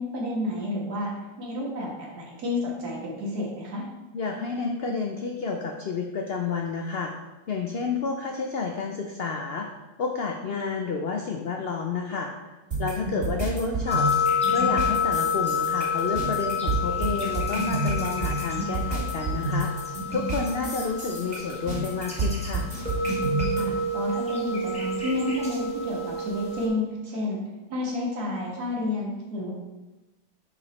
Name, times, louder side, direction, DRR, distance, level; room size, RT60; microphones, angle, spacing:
voice 1, 0.0-3.8 23.6-27.4 27.7-29.5, left 2 dB, 70° right, -3 dB, 2.0 m, -30 dB
voice 2, 4.1-7.1 7.5-9.7 10.0-14.1 14.5-19.7 20.1-22.7, left 4 dB, 80° left, 3 dB, 0.5 m, -30 dB
sound 1, 12.7-23.6, right 2 dB, 45° right, 2.6 m, -29 dB
sound 2, 13.9-26.7, left 4 dB, 5° left, 1.1 m, -29 dB
5.5 x 5.0 x 4.1 m, 1.1 s
omnidirectional pair, 1.7 m